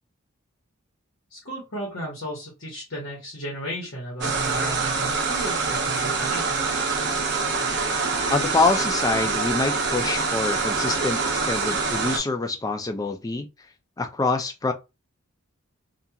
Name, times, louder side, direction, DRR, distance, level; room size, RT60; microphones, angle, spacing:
voice 1, 1.3-6.7, right 1 dB, 60° left, 1.1 m, -34 dB
sound 1, 4.2-12.2, right 4 dB, 50° right, 0.6 m, -25 dB
voice 2, 8.3-13.5 14.0-14.7, left 3 dB, 15° left, 0.3 m, -25 dB
2.8 x 2.4 x 2.3 m
head